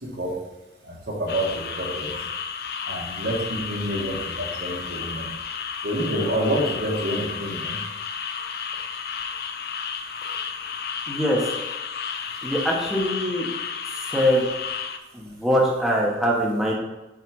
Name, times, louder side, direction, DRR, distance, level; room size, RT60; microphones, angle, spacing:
voice 1, 0.0-0.4 0.9-2.2 2.9-5.3 5.8-7.8, right 1 dB, 80° right, -3 dB, 2.0 m, -28 dB
sound 1, 1.3-15.0, left 6 dB, 60° left, 0.5 m, -32 dB
voice 2, 11.1-11.4 12.4-13.5 14.1-14.5 15.1-16.7, equal, ahead, -4 dB, 1.1 m, -22 dB
6.1 x 4.9 x 4.7 m, 1.0 s
head